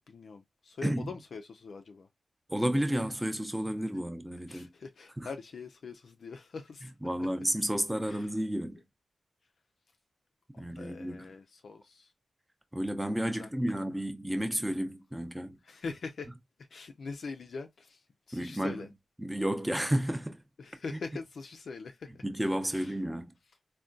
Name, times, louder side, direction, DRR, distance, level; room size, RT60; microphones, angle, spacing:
voice 1, 0.1-2.1 4.5-6.9 8.1-8.3 10.8-12.1 13.4-13.5 15.6-16.3 16.7-18.9 20.6-22.2 22.7-23.0, left 4 dB, 70° left, 0.3 m, -43 dB
voice 2, 2.5-4.7 5.2-5.3 7.0-8.8 10.6-11.3 12.7-15.6 18.3-18.9 19.2-20.4 22.2-23.3, equal, 10° right, 0.6 m, -31 dB
3.6 x 2.1 x 2.5 m
cardioid pair, 70°, 0 cm